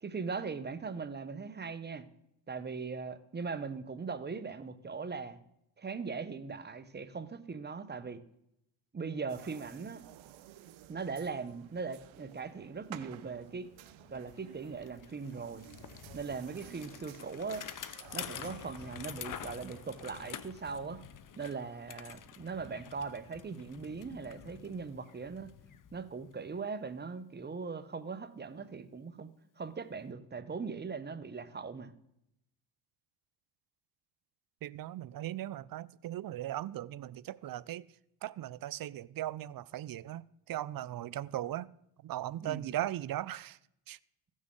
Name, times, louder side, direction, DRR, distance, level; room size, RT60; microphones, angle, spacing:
voice 1, 0.0-2.1 2.5-5.4 5.8-8.2 8.9-10.0 10.9-13.7 14.1-15.7 16.1-17.7 18.1-21.0 21.4-25.5 25.9-29.3 29.6-31.9 42.4-42.7, right 5 dB, 20° right, 0.8 m, -40 dB
sound 1, 9.3-20.4, right 13 dB, 75° right, 0.7 m, -54 dB
Bicycle, 13.4-13.5 13.7-26.6, left 9 dB, 40° left, 0.7 m, -48 dB
voice 2, 34.6-37.8 38.2-41.7 42.0-43.6 43.9-44.0, right 13 dB, 50° right, 0.4 m, -38 dB
16.0 x 6.3 x 3.7 m
cardioid pair, 80°, 47 cm